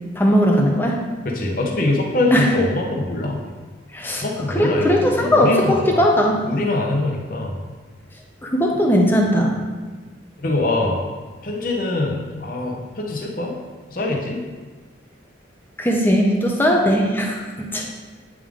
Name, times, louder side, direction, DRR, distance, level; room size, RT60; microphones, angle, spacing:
voice 1, 0.1-1.0 2.3-2.5 3.9-6.4 8.4-9.6 15.8-17.8, equal, 10° left, 0 dB, 0.6 m, -18 dB
voice 2, 1.2-3.4 4.1-6.0 6.4-7.6 10.4-11.0 11.4-13.5 13.9-14.4, left 2 dB, 45° left, -1 dB, 1.0 m, -23 dB
8.3 x 3.7 x 3.6 m, 1.4 s
head